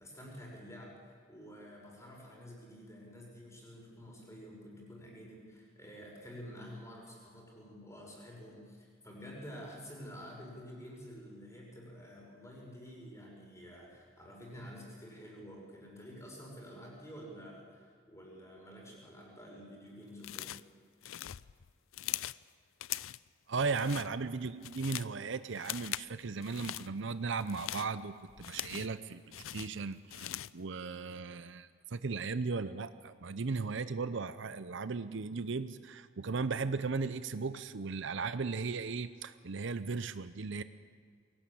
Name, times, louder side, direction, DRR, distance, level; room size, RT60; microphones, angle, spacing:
voice 1, 0.0-20.6 23.7-23.9, equal, 15° left, -2 dB, 5.9 m, -49 dB
sound 1, 20.2-20.7 21.0-22.4 22.8-23.3 23.7-24.1 24.5-25.2 25.6-26.1 26.4-26.9 27.4-29.0 29.3-30.6, left 13 dB, 85° left, 0.5 m, -41 dB
voice 2, 23.5-40.6, right 4 dB, 65° right, 13 dB, 0.7 m, -36 dB
22.0 x 18.0 x 8.6 m, 2.1 s
head